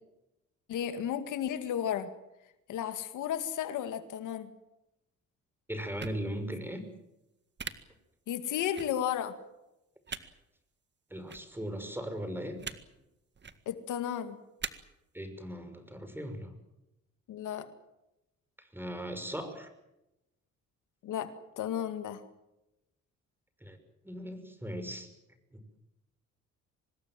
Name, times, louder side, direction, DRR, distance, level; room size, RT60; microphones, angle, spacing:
voice 1, 0.7-2.1 2.7-4.5 8.3-9.4 13.7-14.4 17.3-17.7 21.0-22.2, left 10 dB, 85° left, 10 dB, 2.1 m, -33 dB
voice 2, 5.7-6.8 10.1-10.3 11.1-12.6 15.1-16.6 18.6-19.7 23.6-23.8 24.0-25.1 25.5-25.6, equal, 5° right, 9 dB, 5.9 m, -38 dB
sound 1, 6.0-6.2 7.6-7.7 8.8-8.9 10.1-10.2 11.3-11.4 12.6-12.8 13.3-13.6 14.6-14.7, right 6 dB, 35° right, 1.9 m, -38 dB
25.5 x 20.0 x 7.6 m, 0.92 s
cardioid pair, 90°, 30 cm